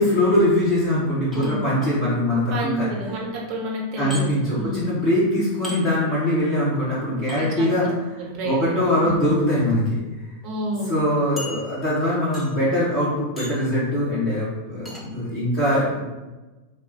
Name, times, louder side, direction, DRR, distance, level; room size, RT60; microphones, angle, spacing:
voice 1, 0.0-2.9 4.0-7.9 8.1-10.0 10.9-16.0, left 1 dB, 35° left, -9 dB, 1.1 m, -22 dB
sound 1, 1.3-1.9 4.1-4.2 5.6-5.8 7.3-7.4 8.7-9.0 9.8-9.9 10.2-10.3 11.4-12.0 12.3-12.7 13.4-13.7 14.9-15.1, left 1 dB, 10° left, 0.9 m, -37 dB
voice 2, 1.3-1.6 2.5-4.9 7.4-7.7 8.2-9.2 10.4-10.9, right 1 dB, 40° right, -2 dB, 1.0 m, -30 dB
3.6 x 2.2 x 4.2 m, 1.2 s
figure-of-eight pair, 90°, 0 cm